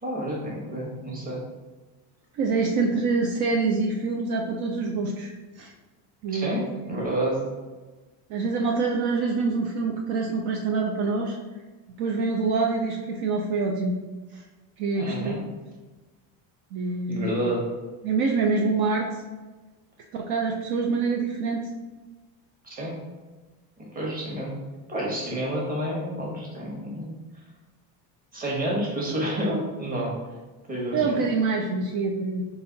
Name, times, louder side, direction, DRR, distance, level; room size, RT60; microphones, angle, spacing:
voice 1, 0.0-1.4 6.3-7.4 15.0-15.4 17.1-17.6 22.6-23.0 23.8-24.5 24.9-27.1 28.3-30.1 30.7-31.2, right 1 dB, 20° right, -3 dB, 1.2 m, -29 dB
voice 2, 2.3-5.7 6.2-7.0 8.3-11.4 12.0-14.0 14.3-14.4 14.8-15.3 16.7-17.3 18.0-19.1 20.1-21.7 30.9-32.4, right 4 dB, 60° right, 1 dB, 0.6 m, -26 dB
4.1 x 2.9 x 3.9 m, 1.2 s
cardioid pair, 135°, 43 cm